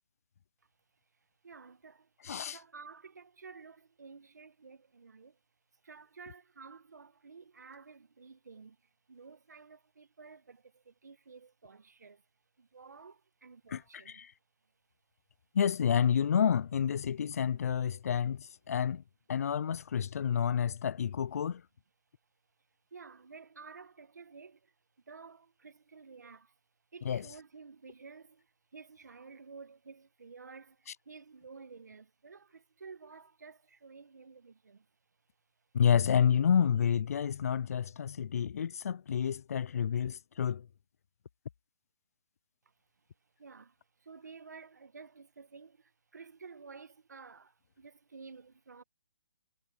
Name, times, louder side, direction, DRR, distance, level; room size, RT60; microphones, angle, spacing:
voice 1, 1.4-2.1 2.5-5.4 5.8-8.8 9.1-12.2 12.6-14.3 22.9-24.7 25.0-26.5 26.9-34.9 43.4-48.8, right 5 dB, 85° right, 1.5 m, -52 dB
voice 2, 2.2-2.6 13.7-14.3 15.5-19.0 19.3-21.6 27.0-27.3 35.7-40.7, left 8 dB, 60° left, 0.4 m, -29 dB
hypercardioid pair, 155°, 9 cm